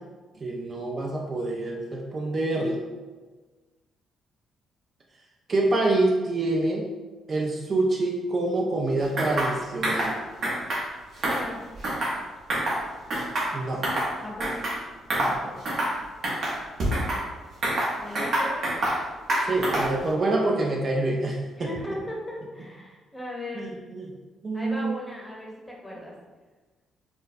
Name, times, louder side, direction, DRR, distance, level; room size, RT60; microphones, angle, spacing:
voice 1, 0.4-2.8 5.5-6.9 7.3-10.2 13.5-13.8 15.2-15.6 19.4-21.7 23.6-24.1 24.4-24.9, right 2 dB, 40° right, -1 dB, 0.4 m, -26 dB
sound 1, 9.2-9.5 9.8-10.1 10.4-10.8 11.2-12.2 12.5-12.8 13.1-14.1 14.4-14.8 15.1-15.4 15.7-16.0 16.2-17.2 17.6-19.0 19.3-20.0, right 1 dB, 60° right, 1.0 m, -26 dB
voice 2, 11.2-11.6 14.2-14.7 18.0-18.9 21.6-23.7 24.5-26.1, left 1 dB, 10° left, -3 dB, 0.9 m, -37 dB
4.5 x 2.1 x 2.6 m, 1.3 s
cardioid pair, 90°, 0 cm